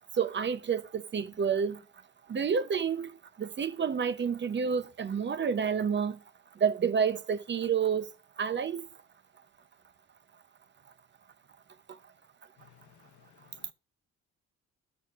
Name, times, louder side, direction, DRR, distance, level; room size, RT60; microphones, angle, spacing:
voice 1, 0.1-1.8 2.3-6.2 6.5-8.1 8.4-8.9 11.9-12.0, right 6 dB, 40° right, 0.7 m, -29 dB
voice 2, 12.6-13.7, left 11 dB, 75° left, 0.9 m, -60 dB
11.0 x 6.2 x 2.4 m
cardioid pair, 90°, 30 cm